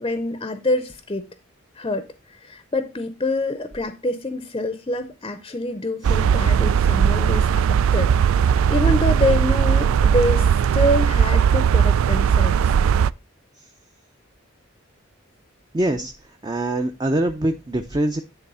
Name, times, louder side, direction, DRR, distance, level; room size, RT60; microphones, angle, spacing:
voice 1, 0.0-1.3 1.7-12.7, left 1 dB, 25° left, 0.6 m, -26 dB
sound 1, 6.0-13.1, right 7 dB, 90° right, 0.3 m, -18 dB
voice 2, 15.7-16.1 16.4-18.2, right 1 dB, 20° right, 0.5 m, -23 dB
10.0 x 3.5 x 5.5 m
head